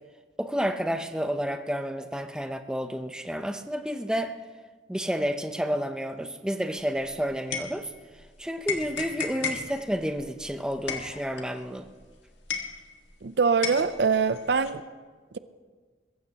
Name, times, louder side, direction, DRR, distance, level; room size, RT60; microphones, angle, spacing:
voice 1, 0.4-4.4 4.9-7.9 8.4-11.9, equal, 5° right, 0.6 m, -30 dB
sound 1, 6.8-8.3 8.7-13.2 13.6-14.7, left 6 dB, 85° left, 1.7 m, -35 dB
voice 2, 13.2-14.8, right 5 dB, 65° right, 0.5 m, -23 dB
22.0 x 15.0 x 2.9 m
head